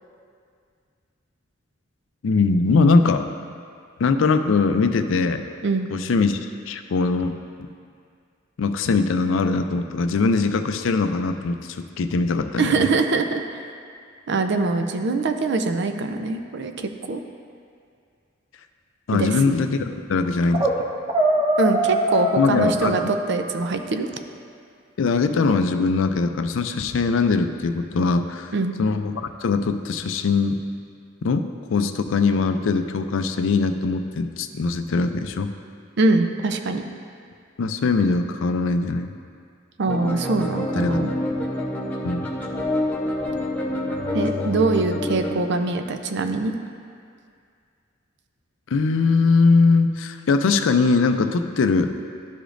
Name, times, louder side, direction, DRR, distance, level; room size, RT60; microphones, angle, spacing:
voice 1, 2.2-3.3 4.0-5.4 5.9-6.4 6.7-7.7 8.6-12.9 19.1-20.7 22.4-23.1 25.0-28.5 28.8-30.6 31.2-35.5 37.6-39.1 40.8-41.0 42.0-42.3 48.7-51.9, left 4 dB, 75° left, 8 dB, 0.4 m, -21 dB
voice 2, 12.6-13.4 14.3-17.2 19.1-19.3 21.6-24.1 28.5-28.7 36.0-36.8 39.8-41.1 44.1-46.5, right 3 dB, 60° right, 7 dB, 0.5 m, -23 dB
sound 1, 20.3-20.8 21.1-23.9, right 1 dB, 25° right, 0.7 m, -23 dB
sound 2, 39.9-45.4, left 1 dB, 10° left, 0.8 m, -27 dB
12.5 x 5.0 x 2.5 m, 2.3 s
head